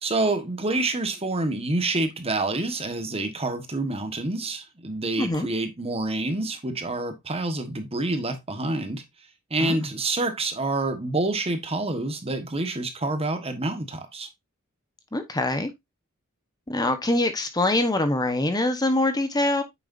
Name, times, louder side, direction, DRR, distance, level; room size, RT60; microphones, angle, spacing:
voice 1, 0.0-9.0 9.5-14.3, right 2 dB, 30° right, 1.4 m, -27 dB
voice 2, 15.1-15.7 16.7-19.6, left 2 dB, 20° left, 1.0 m, -24 dB
9.1 x 6.8 x 2.6 m
head